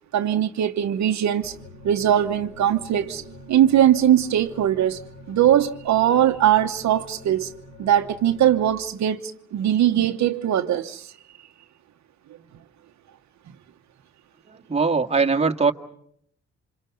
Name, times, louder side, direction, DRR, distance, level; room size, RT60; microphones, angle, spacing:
voice 1, 0.1-1.5 1.8-3.2 3.5-5.0 5.3-7.5 7.8-11.1, right 11 dB, 65° right, 1.2 m, -20 dB
sound 1, 1.4-8.7, left 1 dB, 35° left, 4.6 m, -45 dB
voice 2, 14.5-15.7, right 4 dB, 20° right, 2.0 m, -21 dB
28.5 x 26.5 x 5.3 m
cardioid pair, 90°, 30 cm